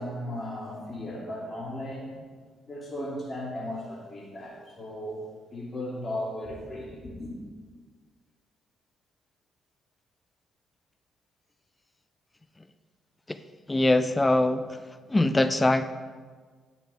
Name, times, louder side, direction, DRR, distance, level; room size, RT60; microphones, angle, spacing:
voice 1, 0.0-2.1 2.7-5.2 5.5-7.4, left 1 dB, 35° left, -4 dB, 3.0 m, -36 dB
voice 2, 13.7-14.8 15.1-15.8, left 2 dB, 15° left, 11 dB, 0.4 m, -22 dB
10.5 x 7.4 x 3.6 m, 1.5 s
cardioid pair, 90°, 0 cm